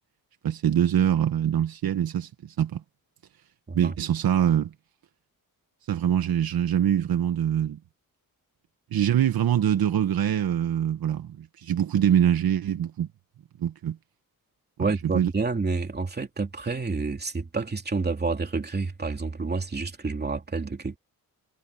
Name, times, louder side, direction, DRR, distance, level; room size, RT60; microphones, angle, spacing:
voice 1, 0.4-2.8 3.7-4.7 5.9-7.8 8.9-13.1 13.6-14.0 15.1-15.3, right 10 dB, 75° right, 1.3 m, -24 dB
voice 2, 14.8-21.0, right 4 dB, 25° right, 2.9 m, -29 dB
wide cardioid pair, 160°, 37 cm